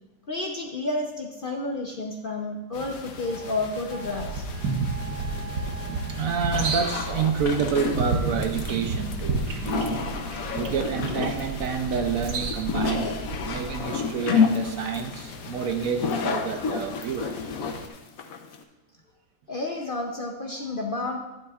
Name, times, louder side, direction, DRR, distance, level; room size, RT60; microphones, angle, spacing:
voice 1, 0.3-4.5 19.5-21.2, left 2 dB, 45° left, 1 dB, 0.7 m, -31 dB
sound 1, 2.7-17.9, left 4 dB, 90° left, 1.5 m, -42 dB
voice 2, 3.9-4.3 4.6-10.1 10.5-13.2 13.4-17.5, right 6 dB, 65° right, 6 dB, 1.0 m, -29 dB
sound 2, 4.0-13.8, right 3 dB, 90° right, 1.5 m, -31 dB
sound 3, 6.5-18.6, left 6 dB, 65° left, 1.2 m, -29 dB
12.0 x 10.5 x 2.4 m, 1.0 s
omnidirectional pair, 1.7 m